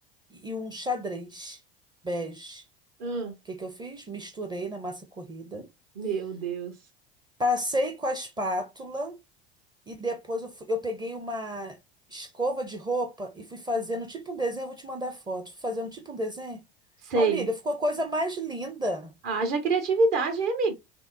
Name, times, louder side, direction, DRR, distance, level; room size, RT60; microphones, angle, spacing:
voice 1, 0.3-1.6 2.0-2.6 3.5-5.7 7.4-9.2 9.9-11.8 12.1-16.6 17.1-19.1, equal, 15° right, 0.6 m, -31 dB
voice 2, 3.0-3.3 5.9-6.8 17.0-17.5 19.2-20.7, right 3 dB, 50° right, 1.2 m, -26 dB
5.7 x 2.0 x 2.5 m
figure-of-eight pair, 75°, 30 cm